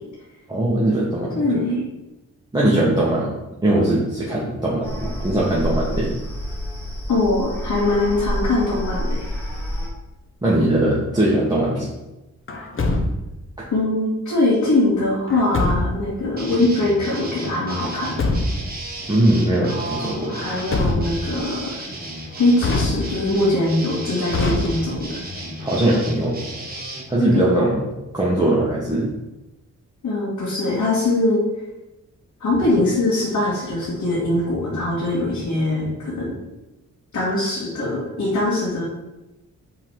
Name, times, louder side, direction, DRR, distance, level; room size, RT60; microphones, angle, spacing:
voice 1, 0.5-1.6 2.5-3.3 3.6-6.2 10.4-11.9 19.1-20.4 25.6-26.4 27.1-27.9 28.1-29.1, right 1 dB, 15° right, -7 dB, 1.4 m, -20 dB
voice 2, 1.3-1.8 7.1-9.3 13.7-18.3 19.7-21.8 22.3-25.2 27.3-27.5 30.0-31.4 32.4-36.4 37.1-38.8, left 2 dB, 70° left, -7 dB, 2.0 m, -22 dB
sound 1, 4.8-9.9, equal, 5° left, 2.0 m, -28 dB
Truck, 12.5-13.4 15.3-16.1 17.8-18.8 20.4-21.4 22.6-23.4 24.3-25.2, left 2 dB, 40° left, 0.9 m, -24 dB
sound 2, 16.4-27.0, right 1 dB, 30° right, 1.6 m, -34 dB
5.6 x 3.9 x 4.7 m, 0.99 s
cardioid pair, 85°, 31 cm